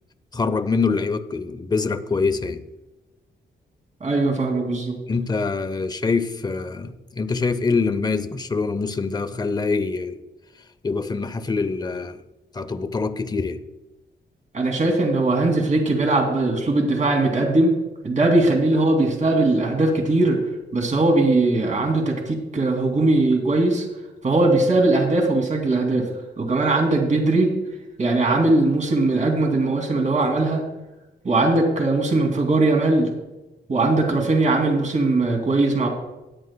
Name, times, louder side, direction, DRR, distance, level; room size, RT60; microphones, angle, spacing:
voice 1, 0.3-2.6 5.1-10.2 10.8-12.2 12.5-13.6, left 4 dB, 20° left, 11 dB, 0.6 m, -24 dB
voice 2, 4.0-5.0 14.5-17.7 18.0-20.4 20.7-23.9 24.2-26.1 26.4-27.5 28.0-30.6 31.2-33.1 33.7-35.9, right 2 dB, 40° right, 1 dB, 2.6 m, -20 dB
18.5 x 9.3 x 2.2 m, 1.0 s
wide cardioid pair, 125°, 19 cm